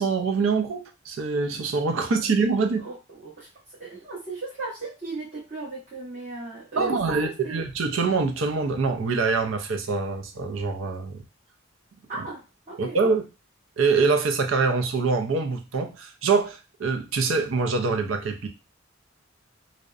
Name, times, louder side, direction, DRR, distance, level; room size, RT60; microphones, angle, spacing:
voice 1, 0.0-2.8 6.8-11.2 12.8-13.2 13.8-18.5, right 4 dB, 80° right, 5 dB, 0.5 m, -24 dB
voice 2, 2.8-7.6 12.1-13.0, right 3 dB, 40° right, -9 dB, 1.0 m, -36 dB
2.6 x 2.1 x 2.4 m, 0.29 s
head